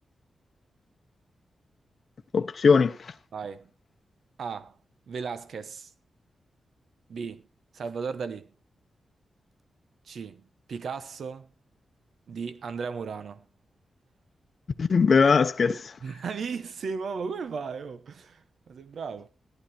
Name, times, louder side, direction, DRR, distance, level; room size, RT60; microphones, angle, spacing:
voice 1, 2.3-3.1 14.8-15.9, left 5 dB, 50° left, 0.8 m, -21 dB
voice 2, 3.3-3.7 4.4-4.7 5.1-5.9 7.1-7.4 7.7-8.5 10.1-10.4 10.7-11.5 12.3-13.5 16.0-19.3, right 5 dB, 70° right, 1.0 m, -35 dB
14.5 x 11.5 x 4.4 m
wide cardioid pair, 135°, 0 cm